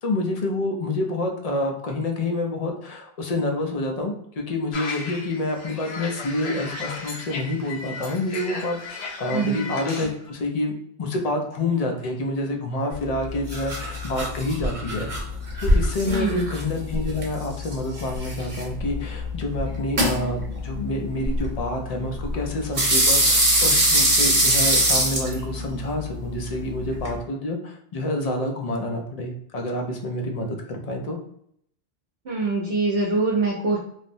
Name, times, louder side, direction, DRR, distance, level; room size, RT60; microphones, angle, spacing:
voice 1, 0.0-15.1 15.6-31.2, left 1 dB, 50° left, 2 dB, 0.5 m, -28 dB
sound 1, 4.7-10.1, left 4 dB, 90° left, 0.9 m, -35 dB
voice 2, 9.3-9.6 16.1-16.4 32.3-33.8, right 3 dB, 75° right, -4 dB, 0.9 m, -23 dB
sound 2, 12.9-27.2, equal, 35° right, 0.8 m, -24 dB
3.2 x 2.0 x 2.5 m, 0.69 s
omnidirectional pair, 1.1 m